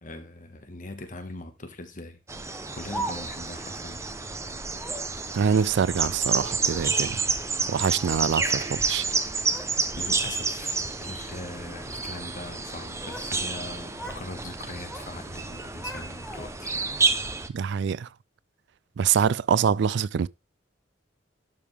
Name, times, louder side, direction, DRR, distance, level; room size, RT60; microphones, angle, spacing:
voice 1, 0.0-2.2 2.7-4.0 9.9-16.8, left 2 dB, 45° left, 1.5 m, -41 dB
sound 1, 2.3-17.5, right 4 dB, 15° right, 0.7 m, -30 dB
Speech, 2.5-3.6 4.7-5.2 6.1-7.2 7.9-8.7 9.0-9.7 10.1-10.5 11.2-11.5 12.6-13.3 13.6-14.3 14.6-15.1 15.5-16.7, right 2 dB, 5° left, 1.3 m, -41 dB
voice 2, 5.3-7.2 7.7-9.0 17.5-18.1 19.0-20.3, right 7 dB, 65° right, 0.3 m, -25 dB
11.5 x 5.3 x 3.4 m
head